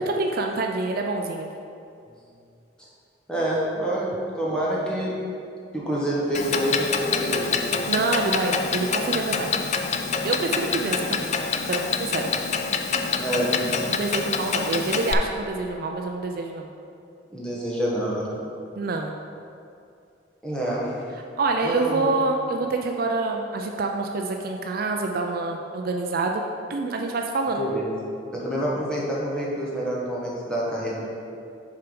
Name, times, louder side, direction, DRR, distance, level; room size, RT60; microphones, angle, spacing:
voice 1, 0.1-1.5 7.9-9.5 10.2-11.3 11.7-12.3 13.9-16.7 18.8-19.1 21.4-26.4 26.7-27.7, right 3 dB, 50° right, 2 dB, 0.4 m, -26 dB
voice 2, 3.3-5.2 5.7-7.6 13.2-13.7 17.3-18.4 20.4-21.0 21.6-22.1 27.6-27.9 28.3-31.1, right 1 dB, 5° left, -6 dB, 1.3 m, -27 dB
Clock, 6.3-15.1, left 5 dB, 35° left, 0.4 m, -26 dB
6.8 x 4.5 x 5.2 m, 2.5 s
head